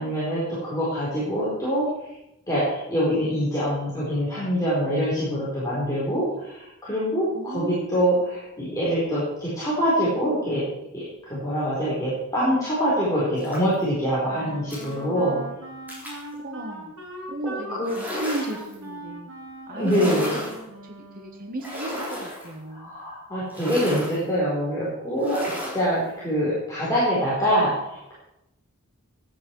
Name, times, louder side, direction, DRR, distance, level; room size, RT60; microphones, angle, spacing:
voice 1, 0.0-1.9 2.5-10.7 10.9-11.0 11.3-15.4 17.7-17.9 19.7-20.4 22.7-25.4 25.7-28.1, equal, 15° left, -9 dB, 4.3 m, -24 dB
voice 2, 7.3-7.8 16.4-16.9 17.3-19.3 19.7-20.3 20.8-22.9, right 1 dB, 40° right, 2 dB, 1.4 m, -35 dB
sound 1, 13.4-13.8 14.7-14.9 15.9-16.3 17.8-18.7 19.8-20.6 21.6-22.5 23.5-24.2 25.2-25.9, equal, 10° right, 3.9 m, -33 dB
Wind instrument woodwind instrument, 14.2-21.6, right 1 dB, 80° right, 2.6 m, -40 dB
15.5 x 9.8 x 4.7 m, 0.87 s
head